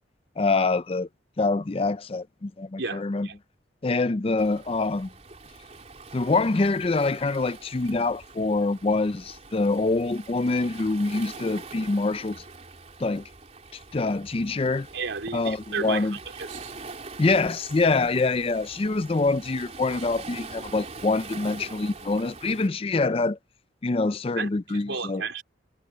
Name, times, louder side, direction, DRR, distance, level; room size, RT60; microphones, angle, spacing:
voice 1, 0.4-1.1 1.4-3.3 3.8-5.1 6.1-12.4 13.0-13.2 13.9-14.9 15.3-16.2 17.2-23.4 23.8-25.2, left 3 dB, 30° left, 0.5 m, -25 dB
voice 2, 2.8-3.4 14.9-16.1 16.4-16.7 24.4-24.5 24.8-25.4, right 4 dB, 80° right, 3.5 m, -32 dB
Waves surf, 4.4-22.7, right 3 dB, 35° right, 4.1 m, -44 dB
head